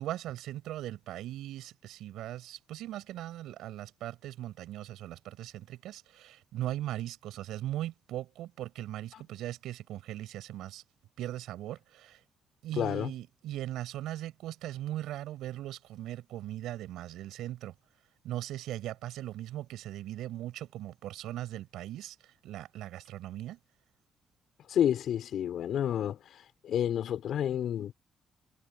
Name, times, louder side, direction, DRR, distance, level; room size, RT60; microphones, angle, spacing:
voice 1, 0.0-10.8 11.2-12.2 12.6-17.7 18.2-22.2 22.4-23.6, right 13 dB, 85° right, 7.4 m, -39 dB
voice 2, 12.8-13.1 24.7-26.2 26.6-27.9, left 10 dB, 70° left, 6.3 m, -29 dB
cardioid pair, 90°, 0 cm